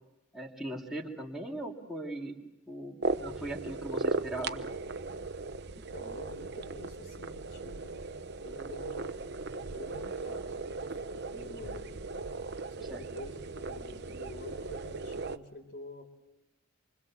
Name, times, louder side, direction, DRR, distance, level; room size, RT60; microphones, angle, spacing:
voice 1, 0.3-2.4 2.7-4.7 12.9-13.0, right 1 dB, ahead, -3 dB, 2.9 m, -39 dB
sound 1, 3.0-15.4, right 3 dB, 50° right, 0.9 m, -37 dB
voice 2, 5.7-8.0 8.4-11.9 12.8-16.1, left 1 dB, 50° left, 6 dB, 4.4 m, -48 dB
27.5 x 25.0 x 7.4 m, 0.92 s
head